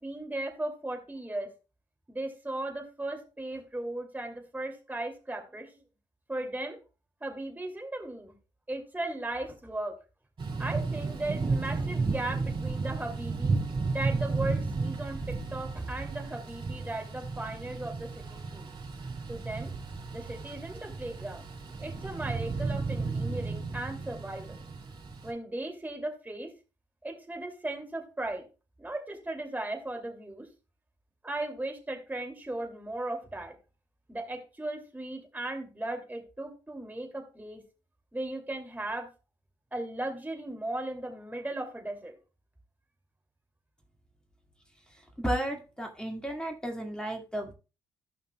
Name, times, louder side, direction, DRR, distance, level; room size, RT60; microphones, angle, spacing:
voice 1, 0.0-1.5 2.1-5.8 6.3-6.8 7.2-8.3 8.7-10.0 10.6-13.6 13.9-18.7 19.3-19.7 20.1-21.5 21.8-24.6 25.2-26.5 27.0-28.4 28.8-30.5 31.2-33.5 34.1-37.6 38.1-39.1 39.7-42.1, right 2 dB, 15° right, 2 dB, 2.6 m, -37 dB
Thunder / Rain, 10.4-25.3, right 4 dB, 40° right, 3.7 m, -33 dB
voice 2, 45.2-47.5, right 1 dB, 5° left, 3 dB, 2.0 m, -33 dB
14.5 x 5.6 x 2.3 m, 0.31 s
hypercardioid pair, 50°, 12 cm